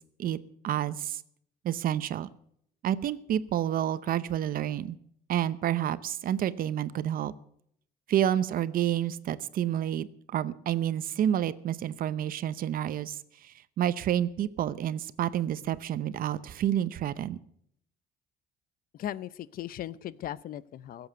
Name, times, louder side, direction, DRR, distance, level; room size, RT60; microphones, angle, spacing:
voice 1, 0.6-1.2 1.6-2.3 2.8-5.0 5.3-7.3 8.1-10.1 10.3-13.2 13.4-17.4, right 11 dB, 60° right, 15 dB, 0.8 m, -29 dB
voice 2, 18.9-21.1, left 12 dB, 60° left, 19 dB, 0.7 m, -38 dB
16.5 x 8.0 x 8.1 m, 0.69 s
cardioid pair, 110°, 17 cm